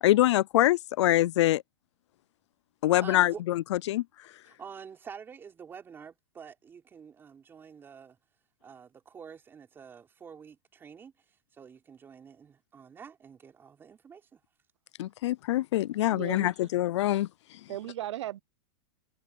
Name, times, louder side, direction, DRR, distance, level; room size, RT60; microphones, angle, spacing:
voice 1, 0.0-1.6 2.8-4.0 15.0-17.3, left 15 dB, 70° left, 0.4 m, -24 dB
voice 2, 3.0-3.4 4.4-8.2 8.6-14.4, right 7 dB, 15° right, 4.7 m, -48 dB
voice 3, 16.1-16.6 17.7-18.4, right 13 dB, 75° right, 0.7 m, -36 dB
supercardioid pair, 165°, 15 cm